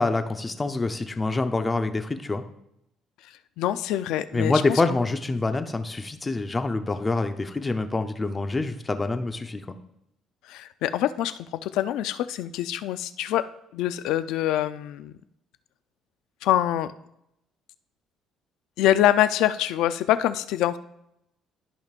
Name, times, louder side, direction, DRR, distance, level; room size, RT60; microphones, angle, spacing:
voice 1, 0.0-2.4 4.3-9.6, left 3 dB, 20° left, 8 dB, 0.7 m, -26 dB
voice 2, 3.6-4.8 10.5-13.5 13.7-15.1 16.4-16.9 18.8-20.8, left 12 dB, 80° left, 13 dB, 0.4 m, -25 dB
14.0 x 5.2 x 2.5 m, 0.80 s
cardioid pair, 110°, 0 cm